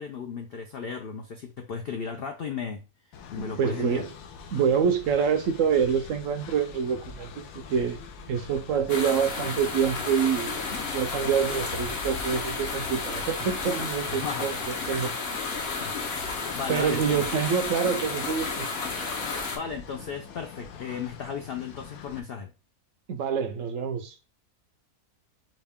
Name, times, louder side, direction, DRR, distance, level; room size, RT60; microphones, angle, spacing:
voice 1, 0.0-2.8 3.3-4.1 14.1-14.5 15.6-17.3 19.5-22.5, left 6 dB, 70° left, 0.5 m, -35 dB
Train, 3.1-22.2, left 5 dB, 85° left, 1.3 m, -44 dB
voice 2, 3.4-4.1 4.5-7.4 7.7-8.0 8.3-14.5 14.9-15.1 16.7-18.7 23.1-24.2, right 7 dB, 70° right, 0.8 m, -26 dB
sound 1, 8.9-19.6, left 4 dB, 50° left, 0.9 m, -32 dB
5.0 x 2.4 x 3.5 m
omnidirectional pair, 1.6 m